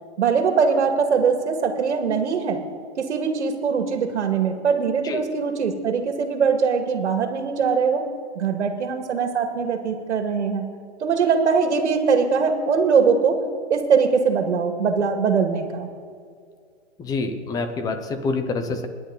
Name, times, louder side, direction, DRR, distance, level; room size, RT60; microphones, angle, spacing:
voice 1, 0.2-2.6 3.0-8.0 8.4-10.7 11.0-13.4 13.7-15.9, right 5 dB, 85° right, 4 dB, 2.2 m, -21 dB
voice 2, 17.0-18.9, left 3 dB, 10° left, 8 dB, 0.8 m, -26 dB
29.5 x 10.5 x 4.0 m, 2.2 s
hypercardioid pair, 160°, 34 cm